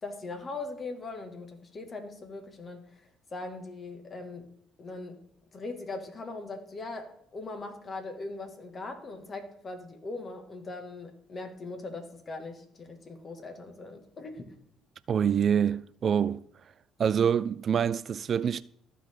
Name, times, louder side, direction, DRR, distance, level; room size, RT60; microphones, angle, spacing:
voice 1, 0.0-3.0 3.3-4.5 4.8-5.2 5.5-14.5, left 3 dB, 40° left, 2.0 m, -40 dB
voice 2, 15.1-16.5 17.0-18.6, right 8 dB, 50° right, 0.3 m, -26 dB
14.0 x 5.0 x 3.8 m
hypercardioid pair, 60°, 0 cm